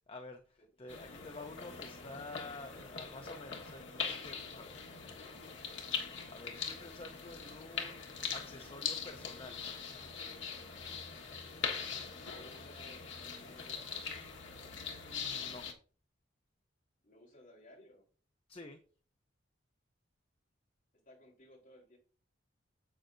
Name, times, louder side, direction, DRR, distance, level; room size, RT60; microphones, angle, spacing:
voice 1, 0.1-4.7 6.3-8.0 8.3-9.7 15.0-15.6 18.5-18.8, left 2 dB, 30° left, 6 dB, 0.7 m, -49 dB
sound 1, 0.9-15.7, left 6 dB, 70° left, 1.5 m, -42 dB
voice 2, 0.9-1.4 4.7-6.0 12.2-14.3 17.0-18.0 21.0-22.0, left 1 dB, 45° left, -2 dB, 3.8 m, -60 dB
10.5 x 7.8 x 2.6 m, 0.40 s
head